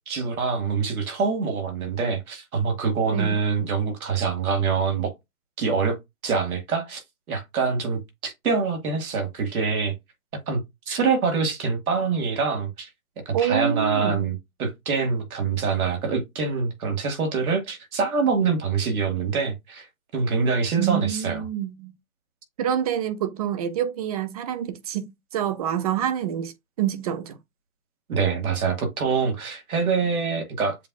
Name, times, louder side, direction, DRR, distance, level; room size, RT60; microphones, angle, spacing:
voice 1, 0.1-5.1 5.6-6.0 6.2-7.0 7.3-9.9 10.5-10.6 10.9-12.9 13.3-19.9 20.1-21.5 28.1-30.8, right 5 dB, 80° right, 2.1 m, -25 dB
voice 2, 13.3-14.2 20.8-21.9 22.6-26.5 26.8-27.4, right 10 dB, 30° right, 0.4 m, -27 dB
7.4 x 2.5 x 2.3 m
hypercardioid pair, 140°, 42 cm